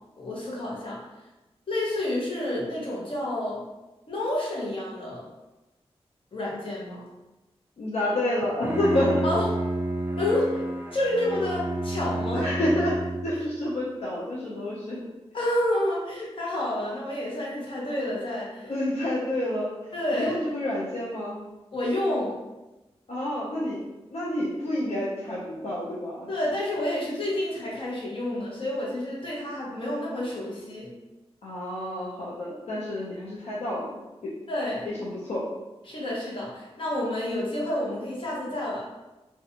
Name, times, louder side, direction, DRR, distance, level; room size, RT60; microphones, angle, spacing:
voice 1, 0.2-1.0 1.7-3.6 4.1-5.2 6.3-7.0 9.2-9.5 10.2-10.6 10.9-12.5 15.3-18.7 19.9-20.4 21.7-22.4 26.3-30.9 34.5-34.9 35.9-38.8, left 1 dB, 55° left, -5 dB, 0.8 m, -29 dB
voice 2, 7.8-9.3 12.3-13.0 13.2-15.0 18.6-19.7 20.1-21.4 23.1-23.8 24.1-26.3 31.4-34.0 34.2-34.3 34.9-35.5, left 1 dB, 75° left, -7 dB, 0.5 m, -29 dB
Bowed string instrument, 8.4-13.5, right 1 dB, 20° right, 0.3 m, -30 dB
2.4 x 2.2 x 2.7 m, 1.1 s
wide cardioid pair, 85°, 11 cm